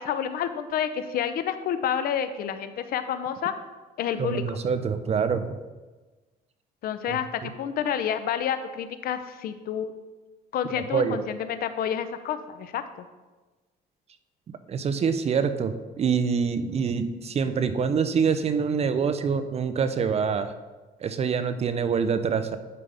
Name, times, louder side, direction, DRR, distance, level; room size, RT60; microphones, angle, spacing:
voice 1, 0.0-3.5 4.0-4.4 6.8-9.9 10.5-13.1, left 9 dB, 60° left, 10 dB, 0.6 m, -29 dB
voice 2, 4.2-5.6 7.1-7.5 10.8-11.2 14.7-20.5 21.0-22.6, right 6 dB, 40° right, 10 dB, 0.6 m, -26 dB
11.0 x 5.1 x 3.4 m, 1.2 s
cardioid pair, 110°, 17 cm